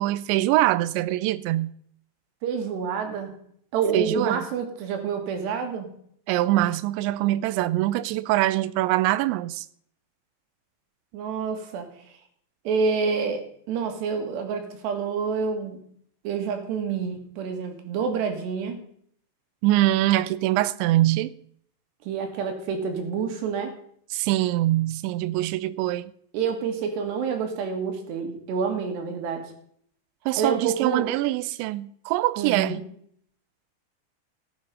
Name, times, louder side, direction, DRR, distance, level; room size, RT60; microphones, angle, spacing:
voice 1, 0.0-1.7 3.9-4.5 6.3-9.7 19.6-21.3 24.1-26.1 30.3-32.8, right 16 dB, 90° right, 2.9 m, -23 dB
voice 2, 2.4-3.3 3.7-5.9 11.1-11.9 12.7-15.8 16.2-18.9 22.1-23.8 26.3-29.5 30.4-31.1 32.4-32.8, right 6 dB, 70° right, 4.0 m, -28 dB
15.5 x 9.1 x 5.4 m
omnidirectional pair, 5.1 m